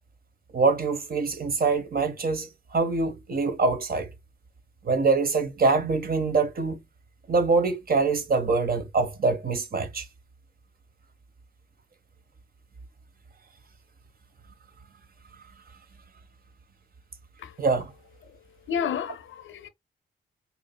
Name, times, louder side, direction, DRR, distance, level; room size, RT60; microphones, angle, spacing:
voice 1, 0.5-4.1 4.8-6.8 7.3-10.0 17.6-17.9, right 4 dB, 45° right, 1.2 m, -24 dB
voice 2, 18.7-19.7, left 7 dB, 70° left, 0.7 m, -30 dB
4.8 x 2.9 x 2.2 m
supercardioid pair, 55°, 21 cm